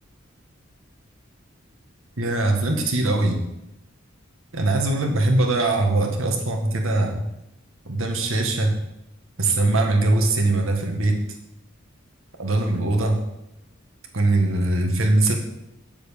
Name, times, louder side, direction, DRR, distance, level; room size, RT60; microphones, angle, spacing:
voice 1, 2.2-3.4 4.5-7.3 7.9-8.7 9.4-11.2 12.4-13.2 14.1-15.3, right 2 dB, 75° right, 3 dB, 1.8 m, -21 dB
7.9 x 7.3 x 7.0 m, 0.89 s
head